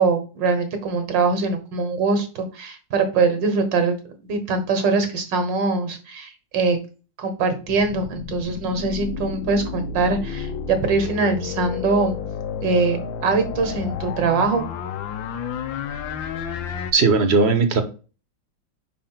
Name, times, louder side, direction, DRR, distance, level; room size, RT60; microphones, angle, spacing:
voice 1, 0.0-4.0 4.2-6.8 7.2-12.2 12.6-14.6, right 4 dB, 75° right, 7 dB, 2.0 m, -22 dB
sound 1, 7.6-16.9, left 7 dB, 90° left, 1.5 m, -31 dB
voice 2, 16.9-17.8, right 4 dB, 45° right, 8 dB, 1.0 m, -17 dB
5.0 x 4.3 x 5.7 m, 0.34 s
omnidirectional pair, 2.0 m